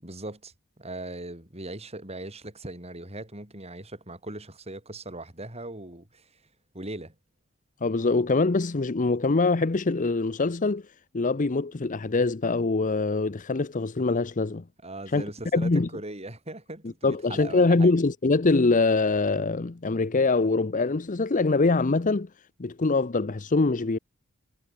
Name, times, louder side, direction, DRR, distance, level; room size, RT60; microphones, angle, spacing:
voice 1, 0.0-6.3 6.7-7.1 14.8-17.9, right 2 dB, 30° right, 6.7 m, -39 dB
voice 2, 7.8-10.8 11.1-14.6 15.1-15.2 15.5-15.9 17.0-22.3 22.6-24.0, left 3 dB, 35° left, 0.7 m, -24 dB
head